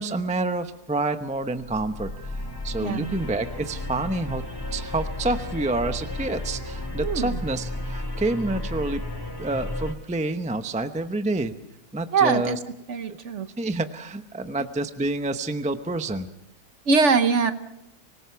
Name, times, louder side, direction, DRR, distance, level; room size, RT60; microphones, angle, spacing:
voice 1, 0.0-4.4 4.7-9.0 9.4-11.5 11.9-12.6 13.1-13.2 13.6-16.3, right 2 dB, 10° right, 8 dB, 0.5 m, -28 dB
sound 1, 1.6-9.9, left 1 dB, 15° left, 2.0 m, -33 dB
voice 2, 2.8-3.2 7.0-7.4 12.1-12.6 12.9-13.5 16.9-17.5, right 5 dB, 50° right, 10 dB, 1.2 m, -22 dB
24.5 x 19.5 x 5.8 m, 0.86 s
omnidirectional pair, 1.7 m